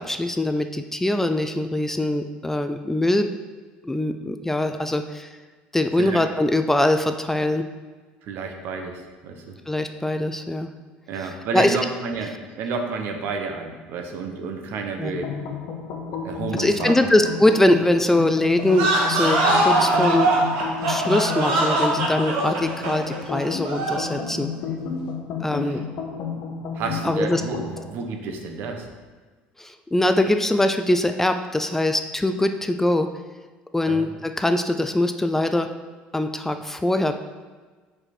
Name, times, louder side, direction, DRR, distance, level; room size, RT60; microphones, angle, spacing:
voice 1, 0.0-3.3 3.8-5.3 5.7-7.6 9.7-10.7 11.5-11.8 15.0-15.2 16.6-20.3 20.9-24.5 25.4-25.9 27.0-27.4 29.6-33.1 33.7-35.7 36.1-37.2, left 1 dB, 10° left, 8 dB, 0.3 m, -22 dB
voice 2, 8.2-9.5 11.1-15.3 16.2-17.1 25.5-25.8 26.7-28.9 33.9-34.1, right 4 dB, 65° right, 4 dB, 0.9 m, -31 dB
sound 1, 15.1-27.9, left 6 dB, 70° left, 0.9 m, -32 dB
sound 2, 18.7-24.1, right 2 dB, 85° right, 1.3 m, -22 dB
4.9 x 4.8 x 4.3 m, 1.4 s
supercardioid pair, 95°, 4 cm